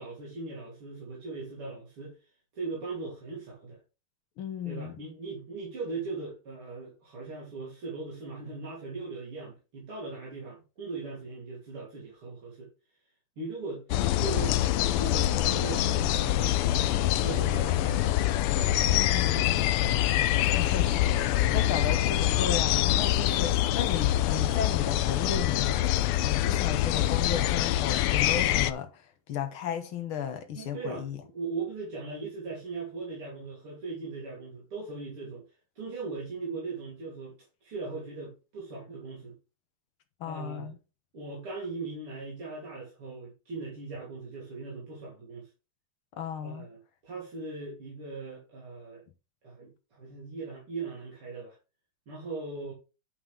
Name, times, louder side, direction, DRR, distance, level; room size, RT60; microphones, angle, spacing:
voice 1, 0.0-2.2 2.5-3.8 4.7-12.7 13.4-13.9 14.2-18.2 18.5-19.6 21.4-21.7 30.5-31.1 31.3-35.4 35.8-37.4 37.6-39.3 40.3-40.7 41.1-45.5 46.4-49.0 49.4-51.6 52.1-52.7, right 3 dB, 80° right, 4.1 m, -39 dB
voice 2, 4.4-5.0 18.9-19.6 20.4-31.2 40.2-40.8 46.1-46.7, left 8 dB, 75° left, 2.1 m, -35 dB
sound 1, 13.9-28.7, left 13 dB, 90° left, 1.6 m, -25 dB
9.9 x 5.6 x 3.5 m
omnidirectional pair, 2.4 m